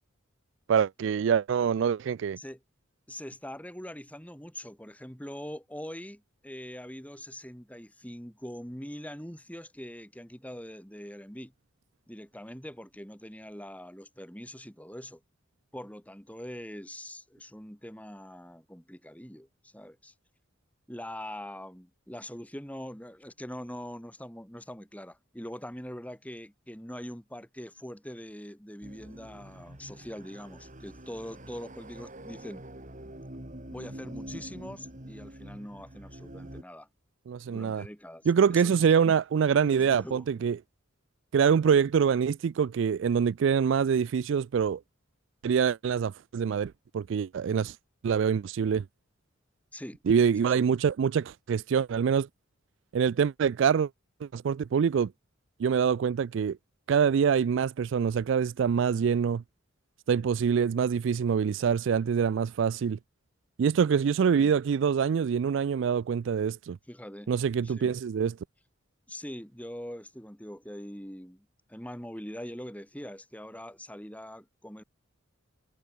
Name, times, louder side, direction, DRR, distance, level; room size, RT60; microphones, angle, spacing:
voice 1, 0.7-2.4 37.3-37.8 38.3-40.6 41.3-44.8 45.4-47.7 48.0-48.8 50.1-52.3 52.9-53.9 54.2-55.1 55.6-56.6 56.9-59.4 60.1-63.0 63.6-66.8 67.3-68.3, right 7 dB, 65° right, 0.3 m, -25 dB
voice 2, 3.1-11.5 12.1-15.2 15.7-20.1 20.9-32.6 33.7-36.9 37.5-39.2 39.7-40.3 49.7-50.0 50.4-50.7 64.3-64.5 66.9-67.3 67.6-68.0 69.1-74.8, equal, 5° left, 7.9 m, -43 dB
sound 1, 28.8-36.6, right 1 dB, 40° right, 3.0 m, -45 dB
head